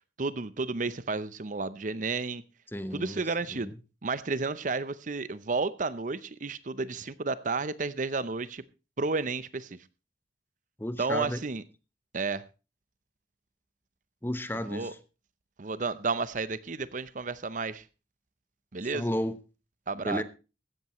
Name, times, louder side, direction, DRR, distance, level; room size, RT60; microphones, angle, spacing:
voice 1, 0.2-2.4 2.9-3.7 4.0-8.6 9.0-9.8 11.0-11.6 12.1-12.4 14.7-14.9 15.6-17.8 18.7-19.0 19.9-20.2, right 4 dB, 45° right, 16 dB, 0.7 m, -32 dB
voice 2, 2.7-3.2 3.5-3.8 10.8-11.4 14.2-15.0 18.9-19.4 19.9-20.2, left 1 dB, 15° left, 12 dB, 1.0 m, -33 dB
16.0 x 13.0 x 3.1 m, 0.31 s
head